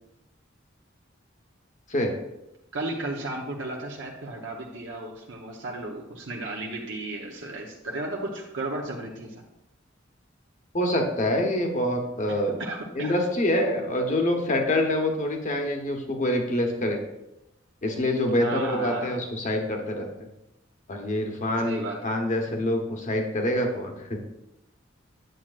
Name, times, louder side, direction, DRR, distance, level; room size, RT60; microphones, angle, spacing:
voice 1, 2.7-9.4 12.6-13.1 18.4-19.2 21.6-22.0, right 2 dB, 70° right, -1 dB, 0.9 m, -34 dB
voice 2, 10.7-12.6 13.0-17.0 17.8-20.1 20.9-24.2, left 1 dB, 40° left, 4 dB, 1.0 m, -26 dB
9.2 x 7.3 x 2.5 m, 0.92 s
head